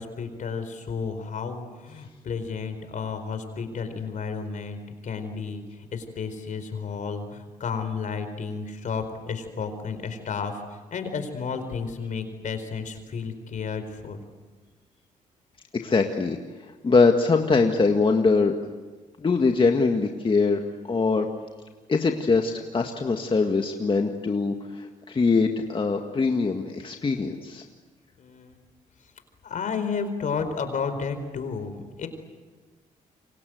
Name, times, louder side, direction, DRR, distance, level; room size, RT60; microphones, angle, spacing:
voice 1, 0.0-14.2 28.2-28.6 29.4-32.1, left 5 dB, 60° left, 8 dB, 4.5 m, -32 dB
voice 2, 15.7-18.5 19.2-21.3 21.9-27.6, left 4 dB, 35° left, 4 dB, 1.9 m, -23 dB
28.5 x 25.0 x 7.9 m, 1.3 s
cardioid pair, 75°, 15 cm